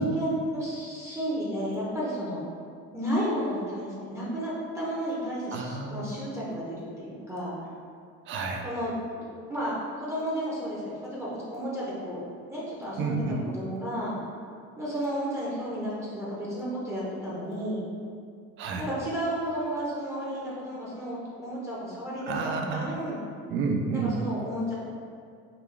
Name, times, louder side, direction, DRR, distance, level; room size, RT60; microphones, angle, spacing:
voice 1, 0.0-2.4 2.9-7.6 8.6-12.2 12.5-13.2 13.5-14.1 14.8-17.8 18.8-22.4 22.7-23.2 23.9-24.7, equal, 10° right, -8 dB, 0.7 m, -32 dB
voice 2, 5.5-6.2 8.3-8.7 13.0-13.5 18.6-18.9 22.3-23.0 23.5-24.2, right 4 dB, 45° right, 2 dB, 0.4 m, -30 dB
3.9 x 2.2 x 3.3 m, 2.3 s
cardioid pair, 120°, 29 cm